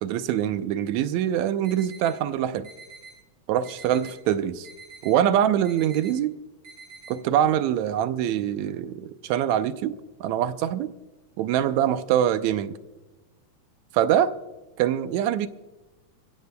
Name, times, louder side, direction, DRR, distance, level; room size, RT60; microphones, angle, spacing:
voice 1, 0.0-2.7 3.5-4.7 5.0-6.4 7.1-10.9 11.4-12.7 13.9-14.3 14.8-15.5, right 10 dB, 80° right, 1.8 m, -24 dB
sound 1, 1.6-2.1 2.6-3.1 3.6-4.1 4.6-5.1 5.6-6.1 6.6-7.1, right 4 dB, 60° right, 7.2 m, -45 dB
23.5 x 16.0 x 2.2 m
omnidirectional pair, 3.5 m